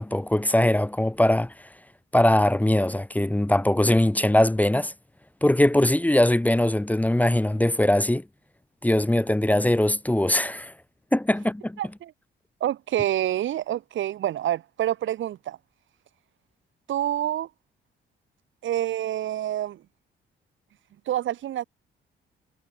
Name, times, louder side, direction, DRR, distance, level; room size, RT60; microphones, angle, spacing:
voice 1, 0.0-1.5 2.1-4.9 5.4-8.2 8.8-10.7 11.1-11.8, left 1 dB, 10° left, 1.5 m, -21 dB
voice 2, 11.8-12.1 12.6-15.6 16.9-17.5 18.6-19.8 21.1-21.6, right 12 dB, 75° right, 2.9 m, -27 dB
cardioid pair, 90°, 20 cm